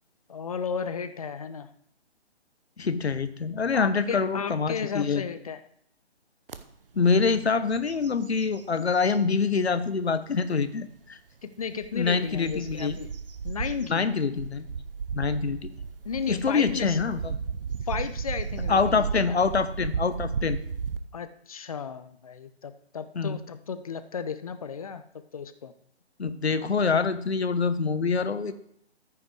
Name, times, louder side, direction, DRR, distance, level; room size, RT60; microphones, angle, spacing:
voice 1, 0.3-1.7 3.7-5.6 11.6-13.1 13.4-14.1 16.0-17.0 17.8-19.4 21.1-25.7, left 6 dB, 35° left, 11 dB, 0.6 m, -34 dB
voice 2, 2.8-5.2 6.9-11.2 11.9-13.0 13.9-14.7 15.1-15.7 16.3-17.3 18.7-20.6 23.1-23.4 26.2-28.5, left 5 dB, 70° left, 12 dB, 1.1 m, -25 dB
sound 1, 6.5-6.6 7.1-7.4 7.7-9.2 9.8-9.9 11.6-21.0, right 5 dB, 55° right, 0.9 m, -34 dB
14.0 x 5.6 x 4.8 m, 0.69 s
figure-of-eight pair, 145°, 33 cm